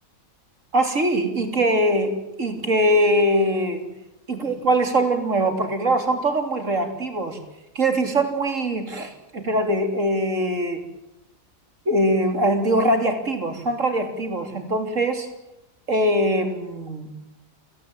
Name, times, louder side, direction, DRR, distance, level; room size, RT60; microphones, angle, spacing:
voice 1, 0.7-3.9 4.3-7.4 7.8-10.8 11.9-15.3 15.9-17.1, right 1 dB, 65° right, 6 dB, 3.7 m, -22 dB
28.5 x 18.5 x 9.0 m, 0.86 s
omnidirectional pair, 1.4 m